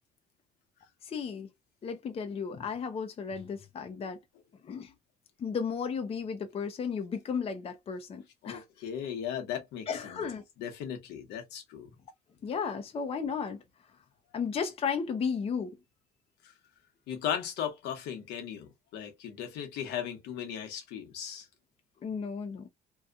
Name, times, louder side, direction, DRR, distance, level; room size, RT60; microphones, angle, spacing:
voice 1, 1.0-1.5 1.8-4.2 4.6-4.9 5.4-8.6 9.9-10.4 12.4-13.6 14.3-15.8 22.0-22.7, left 6 dB, 35° left, 0.6 m, -34 dB
voice 2, 8.4-10.2 10.6-11.9 17.1-21.5, left 9 dB, 85° left, 0.9 m, -37 dB
2.7 x 2.3 x 2.4 m
cardioid pair, 110°, 17 cm